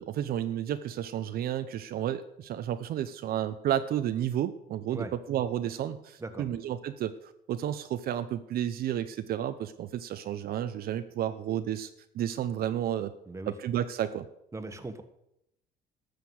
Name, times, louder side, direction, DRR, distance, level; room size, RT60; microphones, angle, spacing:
voice 1, 0.0-7.1 7.5-13.1 13.5-14.3, right 11 dB, 65° right, 10 dB, 0.8 m, -32 dB
voice 2, 14.5-15.0, right 3 dB, 15° right, 9 dB, 1.4 m, -38 dB
13.0 x 6.7 x 8.0 m, 0.79 s
cardioid pair, 110°, 17 cm